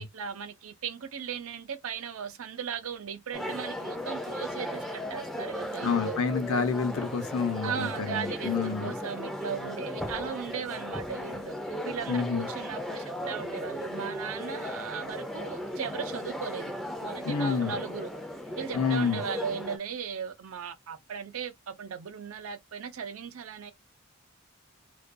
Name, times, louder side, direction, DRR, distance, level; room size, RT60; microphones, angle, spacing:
voice 1, 0.0-6.2 7.6-11.6 11.8-16.7 17.0-18.1 18.6-23.7, right 7 dB, 75° right, 0.5 m, -37 dB
sound 1, 3.3-19.8, left 1 dB, ahead, 0.4 m, -36 dB
voice 2, 5.8-9.0 12.1-12.5 17.2-17.7 18.7-19.2, left 5 dB, 85° left, 0.7 m, -28 dB
2.4 x 2.2 x 2.4 m
head